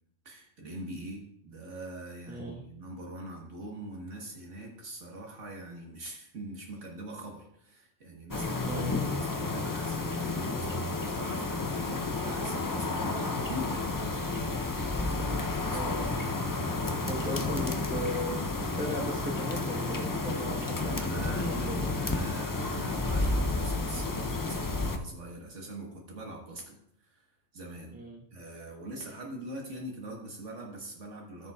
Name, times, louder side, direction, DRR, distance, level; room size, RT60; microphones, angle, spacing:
voice 1, 0.2-14.6 15.0-15.8 20.8-27.3 27.5-28.0 28.3-31.5, right 1 dB, 75° right, -1 dB, 1.7 m, -43 dB
voice 2, 2.3-2.6 8.7-9.0 15.7-16.0 17.1-18.4 18.8-22.0 27.9-28.2, equal, 5° right, -3 dB, 1.1 m, -37 dB
sound 1, 8.3-25.0, left 2 dB, 30° left, 0.4 m, -31 dB
14.0 x 6.8 x 2.4 m, 0.77 s
omnidirectional pair, 1.3 m